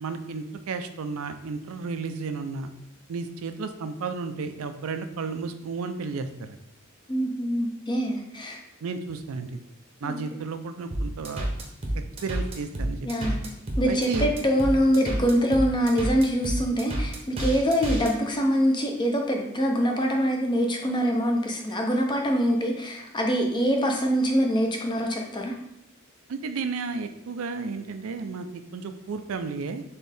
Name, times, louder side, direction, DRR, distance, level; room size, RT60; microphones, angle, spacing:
voice 1, 0.0-2.7 3.1-6.6 8.8-9.6 10.0-11.5 12.2-13.4 13.9-14.3 26.3-29.8, right 4 dB, 80° right, 8 dB, 0.4 m, -33 dB
voice 2, 7.1-8.6 10.0-10.2 13.0-13.4 13.8-25.5, equal, 20° left, 2 dB, 0.6 m, -24 dB
sound 1, 10.9-18.1, right 1 dB, 30° right, 0.8 m, -29 dB
4.3 x 3.6 x 3.4 m, 0.81 s
head